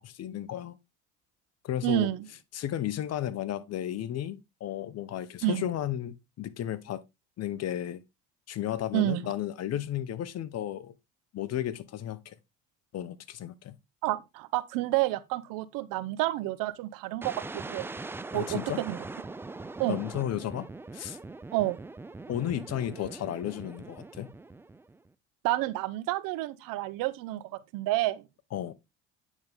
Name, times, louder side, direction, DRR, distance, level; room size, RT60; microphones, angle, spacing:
voice 1, 0.0-0.8 1.6-2.1 2.5-7.0 7.4-8.0 8.5-10.9 11.3-12.4 12.9-13.8 18.3-18.8 19.9-20.7 20.9-21.2 22.3-24.3 28.5-28.7, left 11 dB, 45° left, 0.7 m, -33 dB
voice 2, 1.8-2.2 5.4-5.7 8.9-9.2 14.0-17.9 18.3-19.0 19.8-20.0 21.5-21.8 25.4-27.4 27.7-28.2, right 16 dB, 65° right, 0.7 m, -29 dB
sound 1, 17.2-25.1, right 3 dB, 5° right, 0.3 m, -42 dB
9.0 x 3.6 x 3.4 m
hypercardioid pair, 65°, 36 cm